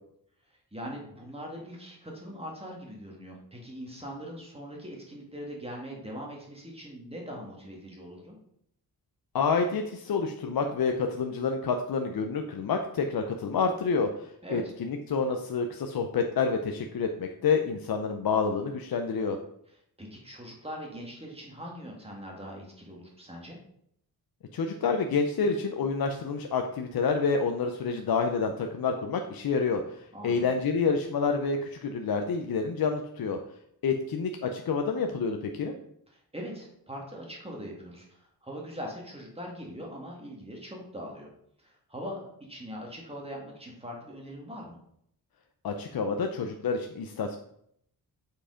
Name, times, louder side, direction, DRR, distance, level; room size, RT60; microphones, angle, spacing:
voice 1, 0.7-8.4 14.4-14.7 20.0-23.6 30.1-30.5 36.1-41.3 41.6-44.8, equal, 15° right, -1 dB, 1.8 m, -41 dB
voice 2, 9.3-19.4 24.5-33.4 33.8-35.7 45.6-47.4, left 5 dB, 65° left, 5 dB, 0.7 m, -28 dB
7.5 x 4.7 x 5.0 m, 0.72 s
wide cardioid pair, 125°, 38 cm